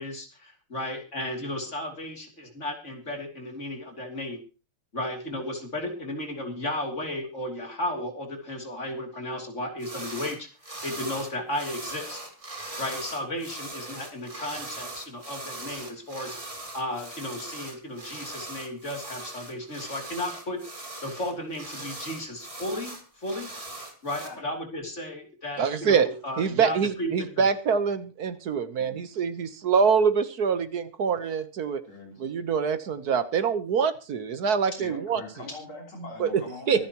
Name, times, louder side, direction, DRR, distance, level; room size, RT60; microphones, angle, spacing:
voice 1, 0.0-4.4 4.9-12.2 12.8-16.4 16.7-23.5 24.0-27.1, left 1 dB, 30° left, 3 dB, 3.3 m, -34 dB
sound 1, 9.8-10.4 10.6-24.3, right 2 dB, 15° right, 2.7 m, -40 dB
voice 2, 25.6-26.1 26.4-31.8 32.2-35.2 36.2-36.9, right 6 dB, 55° right, 12 dB, 1.4 m, -25 dB
voice 3, 31.9-32.2 34.8-36.9, left 2 dB, 75° left, 0 dB, 4.4 m, -42 dB
24.5 x 10.5 x 3.0 m, 0.33 s
omnidirectional pair, 2.4 m